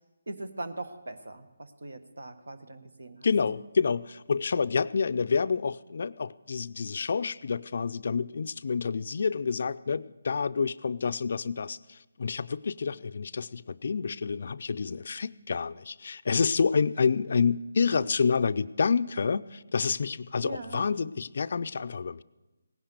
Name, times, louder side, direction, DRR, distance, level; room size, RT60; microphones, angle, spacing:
voice 1, 0.3-3.3 20.4-20.8, right 2 dB, 75° right, 11 dB, 1.3 m, -40 dB
voice 2, 3.2-22.2, left 5 dB, 55° left, 15 dB, 0.4 m, -28 dB
17.5 x 10.5 x 6.8 m, 1.0 s
figure-of-eight pair, 155°, 0 cm